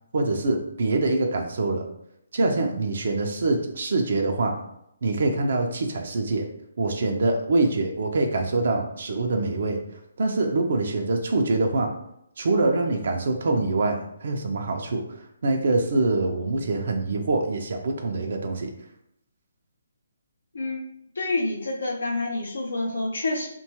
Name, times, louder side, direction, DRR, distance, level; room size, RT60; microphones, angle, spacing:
voice 1, 0.1-1.8 2.3-4.6 5.0-6.5 6.8-9.8 10.2-11.9 12.4-15.0 15.4-18.7, right 2 dB, 60° right, 3 dB, 0.4 m, -24 dB
voice 2, 21.2-23.5, left 2 dB, 75° left, -1 dB, 0.5 m, -28 dB
2.8 x 2.2 x 2.8 m, 0.77 s
figure-of-eight pair, 145°, 0 cm